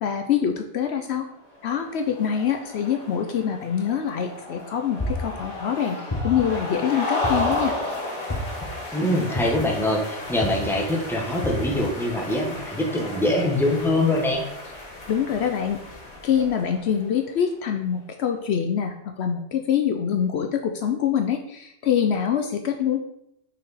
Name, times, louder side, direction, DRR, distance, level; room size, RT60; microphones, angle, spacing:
voice 1, 0.0-1.3 1.6-7.7 15.1-15.8 16.2-23.0, left 8 dB, 70° left, 6 dB, 0.8 m, -25 dB
sound 1, 1.5-17.2, left 1 dB, 90° left, 2.3 m, -34 dB
sound 2, 5.0-5.4 6.1-6.6 7.2-7.7 8.3-8.7 9.3-9.8 10.4-10.7 11.4-11.8, left 2 dB, 20° left, 0.8 m, -29 dB
voice 2, 8.9-14.4, left 1 dB, ahead, 0 dB, 1.0 m, -23 dB
5.9 x 4.7 x 4.0 m, 0.76 s
omnidirectional pair, 1.2 m